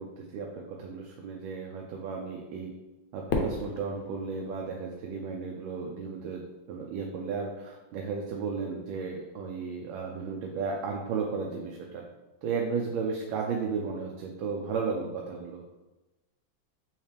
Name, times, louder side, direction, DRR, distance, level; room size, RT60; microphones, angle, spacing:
voice 1, 0.0-2.7 3.1-6.4 6.7-12.0 12.4-15.6, right 5 dB, 85° right, 0 dB, 1.4 m, -34 dB
Fireworks, 3.3-5.6, left 3 dB, 90° left, 1.5 m, -35 dB
4.3 x 3.2 x 3.3 m, 1.1 s
omnidirectional pair, 2.1 m